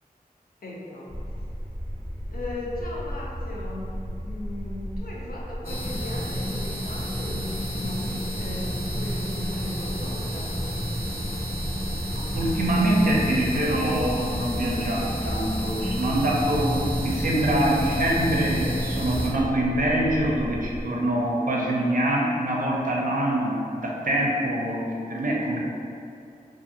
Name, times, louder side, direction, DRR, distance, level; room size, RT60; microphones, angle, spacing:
voice 1, 0.6-1.1 2.3-10.6, left 1 dB, 75° left, -4 dB, 0.5 m, -37 dB
sound 1, 1.1-20.8, equal, 20° left, 0.6 m, -35 dB
sound 2, 5.6-19.3, equal, 15° right, 0.8 m, -31 dB
voice 2, 12.1-24.8 25.1-25.6, right 1 dB, 65° right, -3 dB, 0.5 m, -24 dB
2.5 x 2.3 x 2.7 m, 2.5 s
wide cardioid pair, 65°, 16 cm